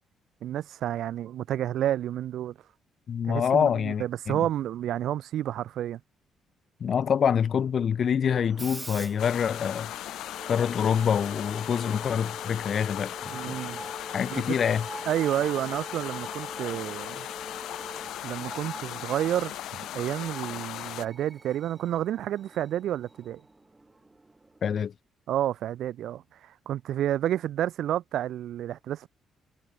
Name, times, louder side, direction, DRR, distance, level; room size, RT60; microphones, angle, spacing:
voice 1, 0.4-2.6 3.3-6.0 13.3-13.8 14.3-14.6 15.1-17.3 18.2-23.4 25.3-29.1, right 11 dB, 75° right, 1.7 m, -30 dB
voice 2, 3.1-4.4 6.8-9.9 10.5-13.6 14.1-14.9 24.6-24.9, left 7 dB, 55° left, 0.8 m, -26 dB
Screech, 8.2-24.8, right 2 dB, 20° right, 7.5 m, -47 dB
sound 1, 9.2-21.1, left 13 dB, 85° left, 3.7 m, -38 dB
sound 2, 10.3-18.1, equal, ahead, 2.9 m, -45 dB
cardioid pair, 90°, 0 cm